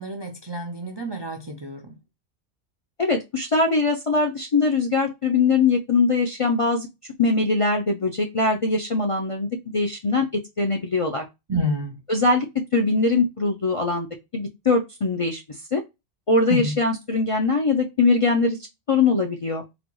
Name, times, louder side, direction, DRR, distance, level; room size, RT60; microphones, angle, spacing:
voice 1, 0.0-1.9 11.5-12.0 16.5-16.8, equal, 45° right, 0.3 m, -28 dB
voice 2, 3.0-6.9 7.2-11.2 12.1-12.4 12.7-14.1 14.3-15.4 15.7-15.8 16.3-18.6 18.9-19.6, left 3 dB, 45° left, 0.4 m, -22 dB
4.0 x 2.3 x 3.0 m
omnidirectional pair, 1.2 m